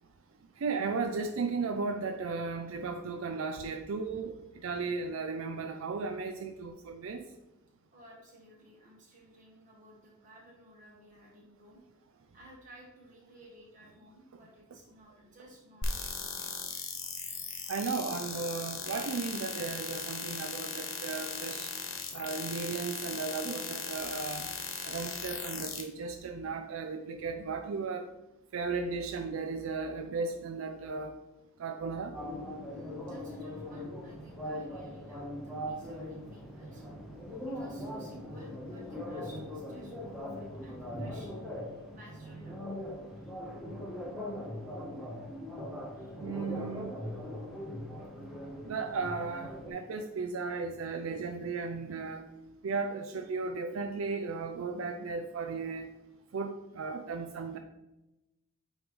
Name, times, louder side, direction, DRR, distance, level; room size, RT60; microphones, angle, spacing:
voice 1, 0.6-4.4 4.6-7.2 17.7-21.7 22.1-24.5 24.8-28.0 28.5-31.2 31.6-32.1 46.2-46.9 48.7-52.2 52.6-55.9 56.3-57.6, right 4 dB, 75° right, 6 dB, 0.4 m, -35 dB
voice 2, 7.9-11.8 12.3-16.4 32.7-36.8 37.5-42.6 45.9-46.2 46.5-46.7 47.1-47.2 53.2-53.3, equal, 35° right, -4 dB, 1.8 m, -56 dB
sound 1, 15.8-25.8, left 5 dB, 75° left, 1.0 m, -38 dB
sound 2, 32.1-49.7, left 1 dB, ahead, 0.8 m, -40 dB
8.7 x 3.1 x 3.6 m, 0.99 s
head